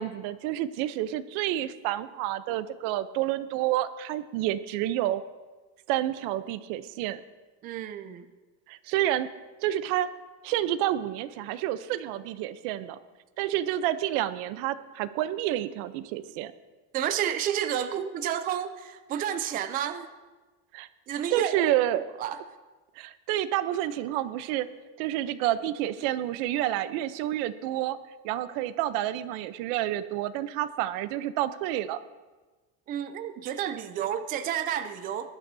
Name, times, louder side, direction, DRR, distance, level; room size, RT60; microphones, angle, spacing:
voice 1, 0.0-5.2 5.9-7.2 8.7-9.3 9.6-10.1 10.4-13.0 13.4-16.5 20.7-20.9 21.3-22.1 23.0-24.7 25.0-28.0 28.2-32.0, right 13 dB, 75° right, 13 dB, 0.8 m, -29 dB
voice 2, 7.6-8.3 16.9-20.1 21.1-21.7 22.2-22.4 32.9-35.3, right 10 dB, 25° right, 9 dB, 0.4 m, -31 dB
20.5 x 11.5 x 2.7 m, 1.2 s
cardioid pair, 180°, 35 cm